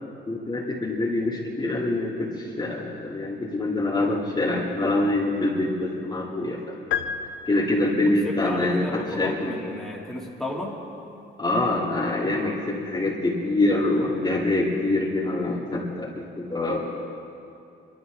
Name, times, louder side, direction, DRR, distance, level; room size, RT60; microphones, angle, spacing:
voice 1, 0.3-6.7 7.5-9.6 11.4-16.8, left 2 dB, 20° left, -5 dB, 2.2 m, -25 dB
sound 1, 6.9-8.2, left 8 dB, 70° left, 0.8 m, -31 dB
voice 2, 8.2-10.8, left 1 dB, ahead, -5 dB, 2.8 m, -33 dB
23.5 x 13.0 x 3.9 m, 2.6 s
cardioid pair, 90°, 20 cm